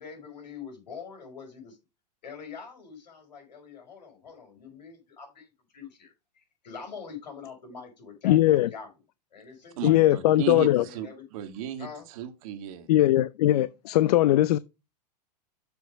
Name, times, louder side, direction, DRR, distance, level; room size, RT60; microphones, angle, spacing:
voice 1, 0.0-1.7 2.2-8.9 9.3-11.2 11.8-12.1, left 6 dB, 90° left, 5.5 m, -44 dB
voice 2, 8.2-8.7 9.8-10.8 12.9-14.6, left 14 dB, 65° left, 0.5 m, -20 dB
voice 3, 9.8-12.9, right 10 dB, 55° right, 1.6 m, -35 dB
7.3 x 5.7 x 5.2 m
hypercardioid pair, 125°, 21 cm